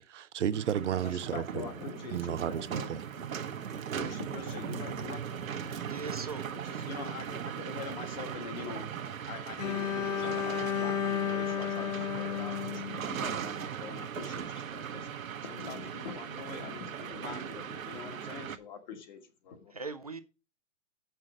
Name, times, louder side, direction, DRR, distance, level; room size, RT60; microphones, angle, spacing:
voice 1, 0.0-1.7 2.1-3.0, right 9 dB, 60° right, 0.8 m, -33 dB
sound 1, 0.5-18.6, right 8 dB, 80° right, 1.1 m, -39 dB
voice 2, 1.0-2.9 3.5-5.9 6.9-8.9 9.3-15.1 15.4-19.7, left 6 dB, 35° left, 1.6 m, -44 dB
voice 3, 5.8-6.4 19.7-20.2, right 4 dB, 30° right, 0.4 m, -39 dB
Bowed string instrument, 9.6-13.6, left 9 dB, 65° left, 0.9 m, -33 dB
7.7 x 5.8 x 6.1 m
hypercardioid pair, 165°, 40 cm